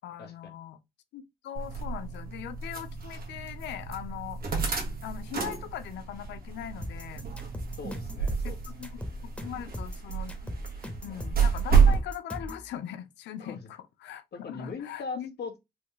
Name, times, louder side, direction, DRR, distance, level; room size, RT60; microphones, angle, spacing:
voice 1, 0.0-0.8 1.1-4.4 5.0-7.3 8.4-9.0 9.4-10.3 11.0-15.3, left 10 dB, 90° left, 0.5 m, -40 dB
sound 1, 1.6-12.0, right 6 dB, 55° right, 1.4 m, -29 dB
sound 2, 6.8-12.7, left 1 dB, 5° left, 1.2 m, -38 dB
voice 2, 7.8-8.6 13.4-13.7 14.3-15.6, left 4 dB, 70° left, 1.4 m, -39 dB
4.1 x 2.3 x 3.0 m
cardioid pair, 65°, 18 cm